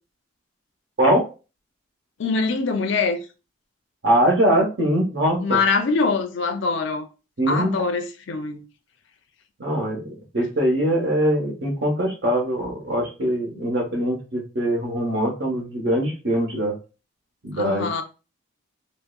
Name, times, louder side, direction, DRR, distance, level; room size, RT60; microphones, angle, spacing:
voice 1, 2.2-3.2 5.4-7.1 7.5-8.6 17.5-18.0, left 4 dB, 60° left, 0.4 m, -23 dB
voice 2, 4.0-5.6 7.4-7.7 9.6-16.7 17.4-18.0, right 1 dB, 55° right, 0.9 m, -22 dB
3.5 x 2.0 x 2.3 m
head